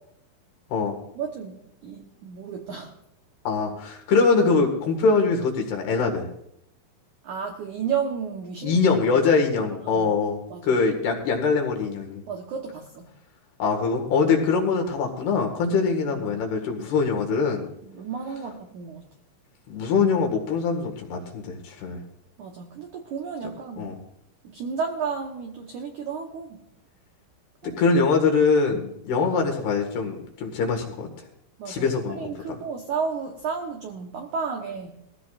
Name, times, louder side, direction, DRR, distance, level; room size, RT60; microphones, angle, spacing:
voice 1, 1.1-2.9 7.2-8.8 9.6-10.1 10.5-10.8 12.3-13.1 16.0-16.5 17.8-19.0 22.4-23.9 24.4-26.6 27.6-28.2 28.7-28.8 31.6-35.0, right 6 dB, 80° right, 2 dB, 1.7 m, -33 dB
voice 2, 3.5-6.3 8.6-12.2 13.6-17.7 19.7-22.0 23.8-24.0 27.6-31.1 31.7-32.3, left 4 dB, 65° left, 2 dB, 3.7 m, -23 dB
21.5 x 16.0 x 2.5 m, 0.76 s
omnidirectional pair, 5.3 m